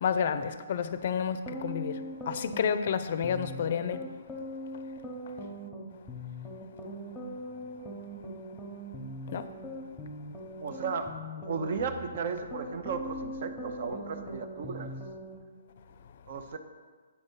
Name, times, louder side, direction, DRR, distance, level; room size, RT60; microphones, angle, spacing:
voice 1, 0.0-4.0 9.3-9.5, left 7 dB, 55° left, 0.4 m, -30 dB
sound 1, 1.5-15.4, equal, 5° left, 1.0 m, -41 dB
voice 2, 10.6-11.2 11.5-14.9 16.3-16.6, right 5 dB, 55° right, 0.7 m, -35 dB
8.4 x 4.0 x 5.5 m
hypercardioid pair, 150°, 0 cm